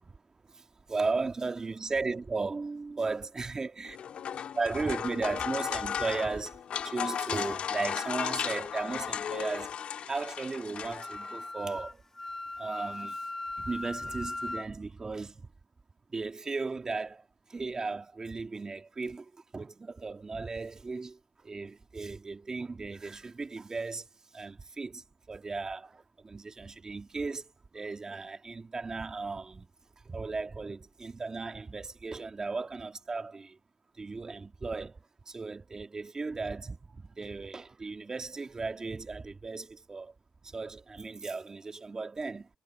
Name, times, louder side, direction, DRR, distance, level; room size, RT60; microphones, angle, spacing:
voice 1, 0.5-4.0 4.5-6.5 6.8-9.7 10.1-12.0 12.6-13.2 13.6-15.5 16.1-17.2 17.5-21.2 21.4-24.1 24.3-29.7 30.1-33.6 34.0-35.0 35.3-40.1 40.4-42.5, right 3 dB, 30° right, 2.1 m, -36 dB
sound 1, 3.8-11.5, left 8 dB, 65° left, 1.8 m, -35 dB
Wind instrument woodwind instrument, 10.9-14.7, left 2 dB, 20° left, 0.8 m, -39 dB
cardioid pair, 80°, 2 cm